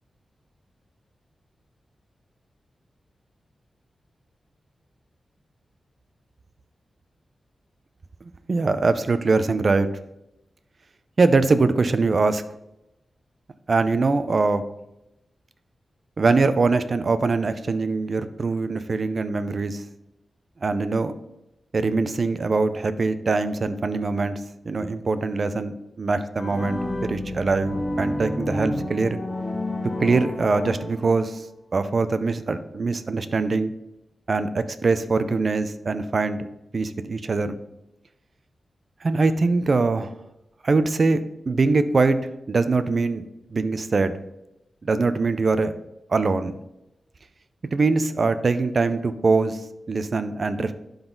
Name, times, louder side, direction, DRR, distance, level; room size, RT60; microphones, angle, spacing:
voice 1, 8.5-9.9 11.2-12.4 13.7-14.6 16.2-19.8 20.6-21.1 21.7-29.2 30.0-31.5 31.7-33.7 34.3-36.5 36.7-37.6 39.0-40.1 40.6-42.2 42.5-43.2 43.5-44.1 44.8-45.7 46.1-46.6 47.7-49.6 49.9-50.7, right 3 dB, 50° right, 12 dB, 0.6 m, -22 dB
sound 1, 26.4-31.3, left 1 dB, 30° left, 1.0 m, -30 dB
11.5 x 4.0 x 3.9 m, 0.88 s
wide cardioid pair, 95°, 0 cm